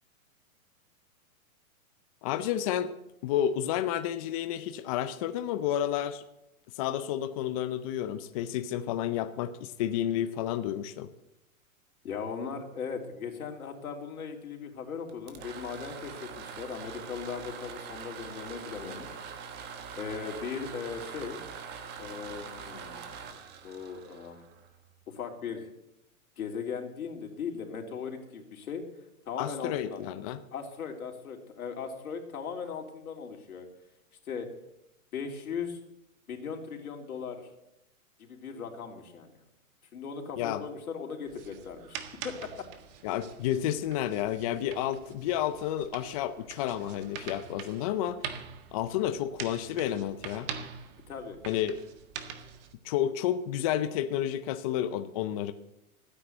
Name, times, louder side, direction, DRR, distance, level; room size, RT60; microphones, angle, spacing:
voice 1, 2.2-2.9 3.2-6.2 6.7-11.1 29.4-30.4 40.4-40.6 43.0-48.2 48.7-50.5 51.5-51.8 52.8-55.5, left 11 dB, 25° left, 10 dB, 0.5 m, -31 dB
voice 2, 12.0-19.1 20.0-21.4 22.0-23.3 23.6-24.5 25.1-25.7 26.4-28.8 29.3-30.0 30.5-33.7 34.3-34.5 35.1-35.8 36.3-37.5 38.2-39.4 39.9-42.0 42.2-42.5 51.1-51.4, left 6 dB, 85° left, 2 dB, 3.6 m, -38 dB
sound 1, 15.1-24.9, right 6 dB, 25° right, 1.3 m, -43 dB
sound 2, 41.3-52.7, right 7 dB, 40° right, 1.7 m, -44 dB
16.0 x 10.0 x 8.1 m, 0.86 s
hypercardioid pair, 150°, 43 cm